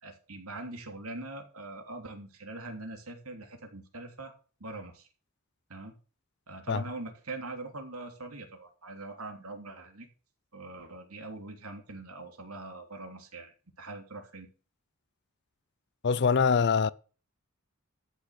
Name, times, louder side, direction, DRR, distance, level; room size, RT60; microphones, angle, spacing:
voice 1, 0.0-4.3 4.6-5.1 5.7-5.9 6.5-10.1 10.5-14.5, right 2 dB, 85° right, 3.1 m, -42 dB
voice 2, 16.0-16.9, left 5 dB, 50° left, 0.5 m, -24 dB
13.0 x 6.4 x 6.7 m
head